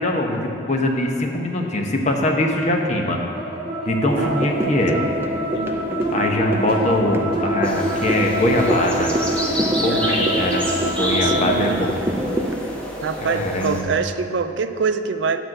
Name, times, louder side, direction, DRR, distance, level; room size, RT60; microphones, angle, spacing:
voice 1, 0.0-3.2 3.9-5.0 6.1-9.2 9.8-10.7 11.0-12.4 13.2-13.9, left 1 dB, 40° left, 1 dB, 0.9 m, -22 dB
sound 1, 3.3-11.6, right 1 dB, 35° right, 2.4 m, -25 dB
sound 2, 4.1-12.5, right 1 dB, 10° right, 0.5 m, -27 dB
voice 2, 4.2-5.0 5.5-5.9 9.9-10.4 10.9-11.9 13.0-15.4, right 5 dB, 75° right, 10 dB, 0.4 m, -26 dB
sound 3, 7.6-13.8, left 1 dB, 5° left, 1.0 m, -28 dB
10.0 x 4.5 x 7.7 m, 2.6 s
head